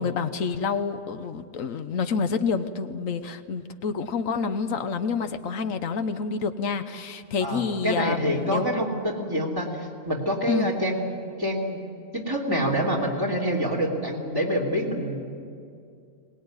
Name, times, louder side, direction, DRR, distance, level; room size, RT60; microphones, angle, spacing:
voice 1, 0.0-8.7 10.5-10.8, left 5 dB, 85° left, 9 dB, 1.4 m, -28 dB
voice 2, 7.4-11.0 11.4-11.8 12.1-15.2, equal, 15° right, -1 dB, 3.2 m, -26 dB
22.0 x 20.0 x 9.7 m, 2.4 s
omnidirectional pair, 1.3 m